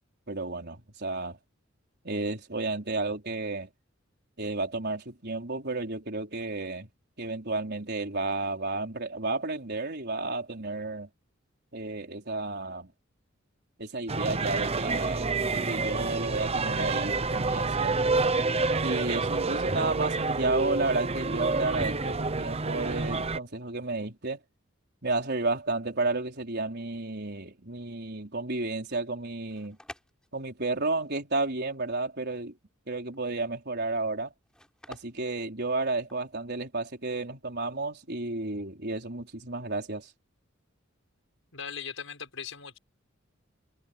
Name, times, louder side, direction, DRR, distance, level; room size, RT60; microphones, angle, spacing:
voice 1, 0.3-1.4 2.0-3.7 4.4-6.9 7.2-11.1 11.7-12.9 13.8-18.3 18.8-24.4 25.0-29.8 30.3-32.5 32.9-34.3 34.9-40.1, right 3 dB, 55° right, 4.7 m, -32 dB
sound 1, 14.1-23.4, right 3 dB, 30° right, 0.9 m, -28 dB
sound 2, 29.4-36.3, left 1 dB, 5° left, 5.1 m, -52 dB
voice 2, 41.5-42.8, left 6 dB, 80° left, 6.1 m, -39 dB
head